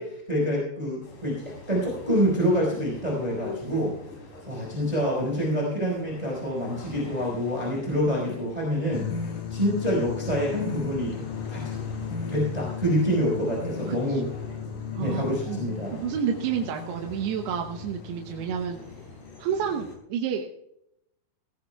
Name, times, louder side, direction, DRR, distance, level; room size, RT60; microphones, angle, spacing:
voice 1, 0.0-3.9 4.5-9.1 9.5-11.2 11.5-11.7 12.3-14.2 15.0-16.0, equal, 10° right, -3 dB, 4.8 m, -26 dB
sound 1, 1.0-20.0, left 2 dB, 90° left, 6.1 m, -46 dB
sound 2, 8.9-19.9, left 6 dB, 55° left, 2.4 m, -36 dB
voice 2, 13.9-14.2 15.0-15.6 15.9-18.8 19.4-20.7, right 7 dB, 85° right, 2 dB, 2.9 m, -30 dB
18.5 x 17.5 x 2.3 m, 0.79 s
omnidirectional pair, 4.6 m